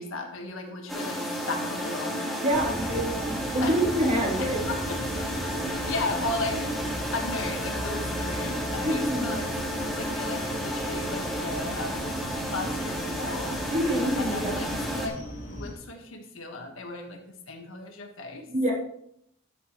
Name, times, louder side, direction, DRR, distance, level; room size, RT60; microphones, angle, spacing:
voice 1, 0.0-3.0 3.6-3.7 4.4-5.0 5.6-6.7 7.1-12.1 12.4-13.6 14.2-18.4, left 2 dB, 75° left, 2 dB, 1.5 m, -36 dB
sound 1, 0.9-15.1, equal, ahead, 2.0 m, -32 dB
voice 2, 2.4-4.6 8.8-9.4 13.7-14.6 18.5-18.7, right 1 dB, 35° right, -3 dB, 3.1 m, -26 dB
sound 2, 2.5-15.7, equal, 35° left, 2.6 m, -38 dB
12.5 x 8.1 x 3.1 m, 0.71 s
head